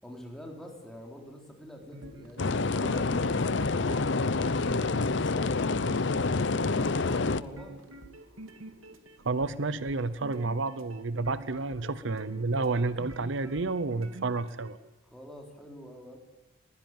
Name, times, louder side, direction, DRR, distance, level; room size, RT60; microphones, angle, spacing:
voice 1, 0.0-7.8 15.0-16.2, equal, 5° left, 1 dB, 3.8 m, -47 dB
sound 1, 1.8-14.7, right 1 dB, 85° right, 2.5 m, -47 dB
sound 2, 2.4-7.4, left 3 dB, 55° left, 0.7 m, -27 dB
voice 2, 9.2-14.8, right 3 dB, 60° right, 15 dB, 0.7 m, -30 dB
21.5 x 16.0 x 9.1 m, 1.1 s
head